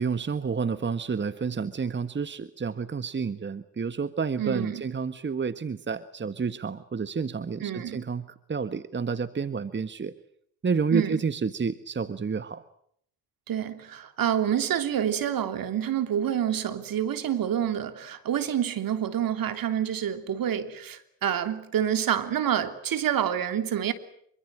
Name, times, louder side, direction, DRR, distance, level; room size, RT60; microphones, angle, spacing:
voice 1, 0.0-10.1 10.6-12.6, right 5 dB, 30° right, 1.5 m, -30 dB
voice 2, 4.4-4.8 7.6-8.0 10.9-11.2 13.5-23.9, right 10 dB, 60° right, 3.3 m, -27 dB
27.0 x 24.5 x 7.8 m
hypercardioid pair, 55°, 39 cm